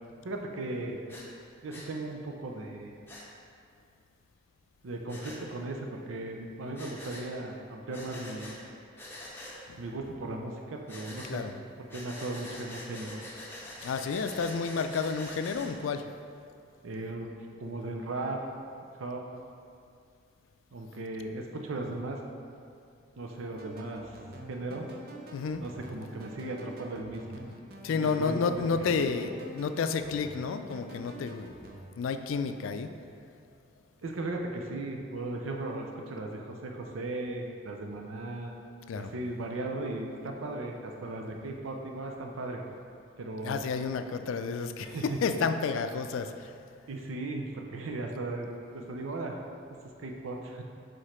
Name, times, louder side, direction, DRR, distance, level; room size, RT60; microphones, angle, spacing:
voice 1, 0.2-1.0 1.6-2.9 4.8-8.5 9.8-11.4 11.9-13.2 16.8-18.4 18.9-19.2 20.7-22.2 23.2-24.2 24.5-24.9 25.6-27.4 27.9-28.9 34.0-38.5 38.9-42.6 43.2-43.6 44.8-45.4 46.9-48.5 48.7-49.4 50.0-50.6, right 2 dB, 90° right, 2 dB, 0.5 m, -37 dB
Breathing, 1.1-1.3 1.7-1.9 3.1-3.2 5.1-5.4 6.7-7.3 7.9-8.6 9.0-9.6 10.9-11.3 11.9-15.7, left 1 dB, 10° left, 0.7 m, -44 dB
voice 2, 13.8-16.0 25.3-25.6 27.8-31.6 32.0-32.9 38.9-39.1 43.4-46.5, left 5 dB, 85° left, 9 dB, 0.3 m, -31 dB
sound 1, 23.6-31.8, right 1 dB, 50° right, 0.6 m, -47 dB
4.9 x 4.5 x 4.3 m, 2.4 s
head